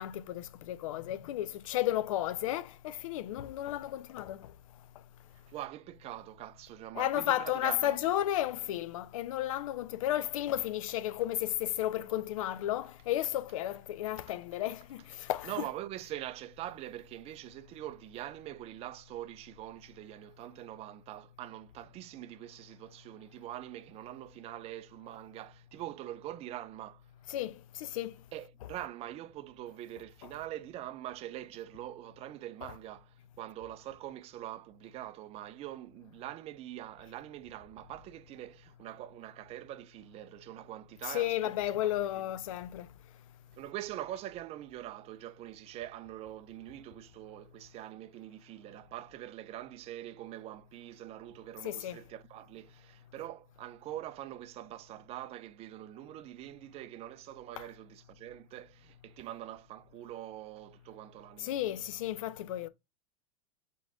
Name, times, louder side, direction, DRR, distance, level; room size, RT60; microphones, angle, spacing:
voice 1, 0.0-4.5 6.9-15.5 27.3-28.2 30.2-30.3 41.0-42.9 51.6-52.0 57.6-57.7 61.4-62.7, left 13 dB, 75° left, 0.5 m, -33 dB
voice 2, 5.5-8.0 15.4-27.0 28.3-41.5 41.8-41.9 43.6-61.5, right 13 dB, 35° right, 0.5 m, -44 dB
3.8 x 3.7 x 3.6 m
hypercardioid pair, 115°, 17 cm